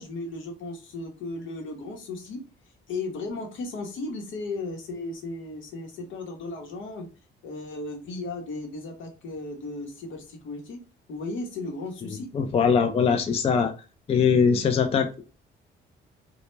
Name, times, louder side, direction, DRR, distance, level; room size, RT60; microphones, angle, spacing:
voice 1, 0.0-2.4 2.9-7.1 7.4-10.8 11.1-12.3, left 2 dB, 75° left, 3 dB, 0.9 m, -35 dB
voice 2, 12.3-13.7 14.1-15.2, left 6 dB, 30° left, 5 dB, 0.4 m, -21 dB
2.1 x 2.0 x 3.1 m, 0.33 s
cardioid pair, 90°, 20 cm